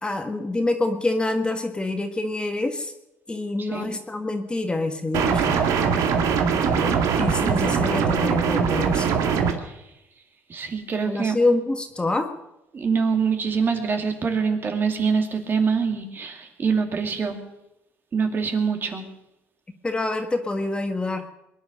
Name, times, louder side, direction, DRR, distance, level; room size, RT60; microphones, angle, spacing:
voice 1, 0.0-2.9 3.3-5.6 6.7-9.2 11.0-12.3 19.8-21.3, left 2 dB, 15° left, 6 dB, 1.5 m, -26 dB
sound 1, 5.1-9.5, right 6 dB, 75° right, 2.0 m, -21 dB
voice 2, 10.5-11.4 12.7-17.4 18.1-19.0, right 5 dB, 40° right, 4 dB, 2.5 m, -24 dB
21.5 x 10.5 x 6.5 m, 0.90 s
cardioid pair, 95°, 6 cm